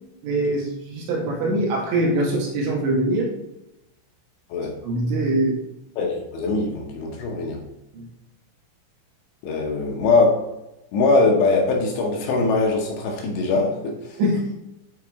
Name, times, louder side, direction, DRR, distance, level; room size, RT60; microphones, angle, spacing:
voice 1, 0.2-3.3 4.8-5.5 7.9-8.1 14.2-14.6, right 1 dB, 70° right, -2 dB, 3.4 m, -23 dB
voice 2, 6.0-7.6 9.4-10.4 10.9-14.2, left 3 dB, 75° left, 0 dB, 2.8 m, -21 dB
9.5 x 4.3 x 3.5 m, 0.90 s
omnidirectional pair, 5.6 m